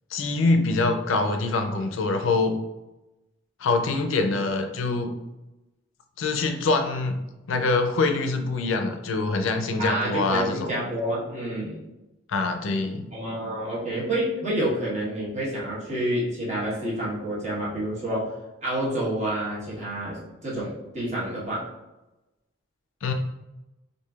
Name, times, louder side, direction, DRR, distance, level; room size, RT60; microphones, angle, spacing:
voice 1, 0.1-2.6 3.6-5.1 6.2-7.2 7.5-10.7 12.3-13.0 23.0-23.1, left 3 dB, 75° left, 6 dB, 0.4 m, -24 dB
voice 2, 9.8-11.8 13.1-18.3 18.6-21.7, right 1 dB, 35° right, -6 dB, 1.1 m, -28 dB
4.4 x 2.6 x 2.3 m, 0.98 s
head